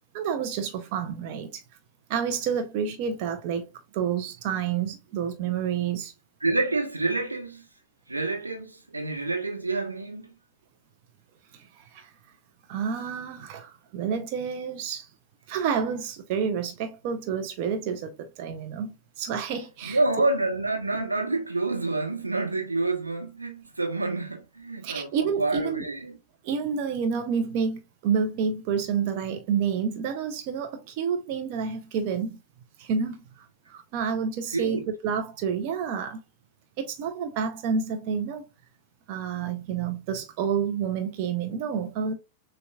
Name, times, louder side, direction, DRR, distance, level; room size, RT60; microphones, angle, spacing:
voice 1, 0.1-1.6 2.1-3.7 3.9-6.1 11.5-12.1 12.7-15.1 15.5-20.0 24.8-25.8 26.4-32.4 32.8-36.2 36.8-38.4 39.1-42.1, right 6 dB, 45° right, 0.6 m, -29 dB
voice 2, 6.4-7.7 8.1-10.3 19.8-26.2 34.5-34.8, right 2 dB, 80° right, 1.0 m, -28 dB
6.7 x 2.3 x 2.3 m
figure-of-eight pair, 90°, 0 cm